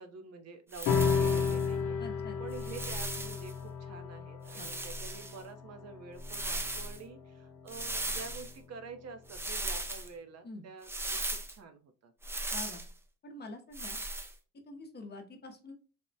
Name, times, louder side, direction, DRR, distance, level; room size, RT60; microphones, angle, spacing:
voice 1, 0.0-2.0 2.4-12.1, right 4 dB, 55° right, 8 dB, 0.6 m, -48 dB
sound 1, 0.7-1.7 2.5-3.5 4.5-5.4 6.2-7.0 7.7-8.5 9.3-10.1 10.8-11.5 12.2-12.9 13.7-14.3, right 2 dB, 10° right, 0.3 m, -37 dB
sound 2, 0.9-7.6, left 6 dB, 75° left, 0.6 m, -33 dB
voice 2, 2.0-2.4 4.5-4.7 10.4-10.7 12.5-12.8 13.2-14.0 14.7-15.7, left 2 dB, 35° left, 4 dB, 0.6 m, -46 dB
3.4 x 2.1 x 2.6 m, 0.35 s
cardioid pair, 90°, 30 cm